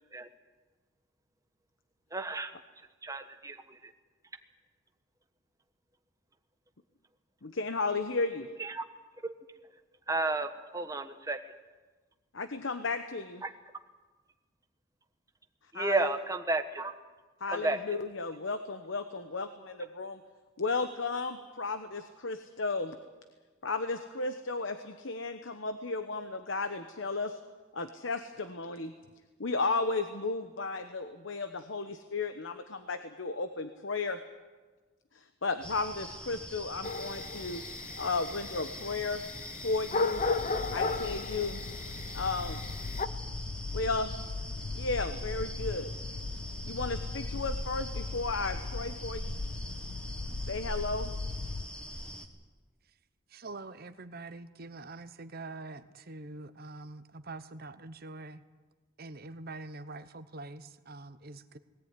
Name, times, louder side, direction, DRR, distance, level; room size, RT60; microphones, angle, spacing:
voice 1, 2.1-2.5 3.0-3.9 8.6-8.8 9.2-9.3 10.1-11.4 13.4-13.5 15.7-16.9 17.5-17.8, right 2 dB, 15° right, 7 dB, 1.2 m, -32 dB
voice 2, 7.4-8.5 12.3-13.4 15.7-16.1 17.4-20.2 20.6-23.0 23.6-27.4 27.7-28.9 29.4-34.2 35.1-37.6 38.0-39.2 39.6-40.3 40.7-41.6 42.1-42.6 43.7-44.1 44.7-45.9 46.6-49.3 50.4-51.1, left 3 dB, 65° left, 9 dB, 1.0 m, -34 dB
sound 1, 35.6-52.3, equal, 5° left, 1.6 m, -42 dB
sound 2, 36.8-43.1, left 3 dB, 35° left, 0.8 m, -35 dB
sound 3, 40.1-51.7, left 3 dB, 85° left, 0.7 m, -39 dB
voice 3, 53.3-58.4 59.0-61.6, right 2 dB, 45° right, 12 dB, 1.0 m, -45 dB
20.0 x 17.0 x 9.7 m, 1.3 s
head